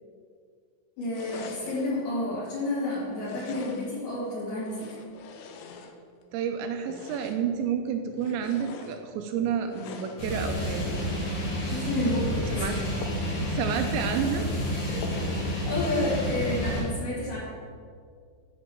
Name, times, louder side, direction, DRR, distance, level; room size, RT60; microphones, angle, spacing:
voice 1, 1.0-4.9 11.7-12.7 15.6-17.4, left 1 dB, 60° left, -12 dB, 4.6 m, -30 dB
sound 1, 1.1-2.0 3.1-4.0 4.6-6.3 6.8-7.6 8.1-9.0 9.6-10.3 10.8-11.4 11.8-12.3 13.0-13.4 13.7-13.8 14.2-14.3 15.0-15.5 15.8-16.3, left 5 dB, 80° left, 3.1 m, -44 dB
voice 2, 6.3-11.0 12.5-12.8 13.4-14.5, right 8 dB, 85° right, 5 dB, 2.7 m, -30 dB
sound 2, 10.2-16.8, equal, 40° left, 2.2 m, -30 dB
11.0 x 5.3 x 7.5 m, 2.1 s
omnidirectional pair, 5.6 m